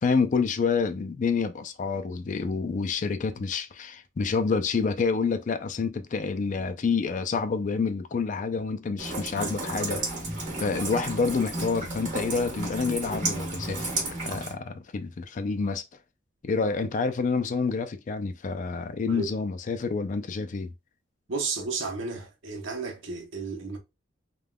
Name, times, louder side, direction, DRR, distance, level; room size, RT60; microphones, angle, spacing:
voice 1, 0.0-10.0 10.6-15.8 16.4-20.7, left 4 dB, 40° left, 0.4 m, -28 dB
Rain, 9.0-14.5, right 2 dB, 40° right, 1.3 m, -32 dB
voice 2, 21.3-23.8, right 4 dB, 85° right, 0.9 m, -33 dB
3.4 x 2.3 x 2.2 m
head